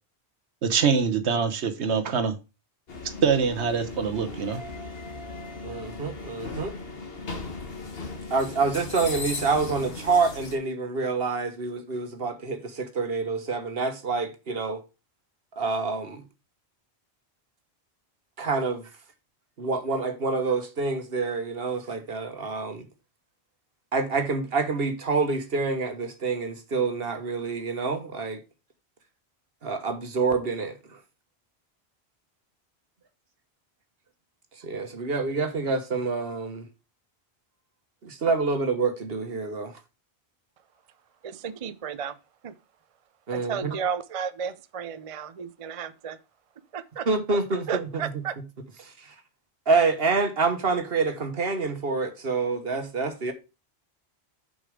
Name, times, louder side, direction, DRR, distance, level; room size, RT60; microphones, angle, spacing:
voice 1, 0.6-2.4 3.2-4.6, right 6 dB, 85° right, 1.3 m, -24 dB
sound 1, 2.9-10.6, left 3 dB, 60° left, 1.6 m, -37 dB
voice 2, 5.6-6.8 8.3-14.8 15.6-16.2 18.4-18.9 19.6-22.8 23.9-28.4 29.6-31.0 34.6-36.7 38.0-39.7 43.3-43.8 47.1-48.0 48.8-49.1 49.7-53.3, right 4 dB, 65° right, 1.6 m, -27 dB
voice 3, 41.2-42.2 42.4-42.5 43.3-46.2 46.7-47.1 47.7-48.4, right 7 dB, 40° right, 0.5 m, -33 dB
6.7 x 5.3 x 5.0 m
omnidirectional pair, 1.1 m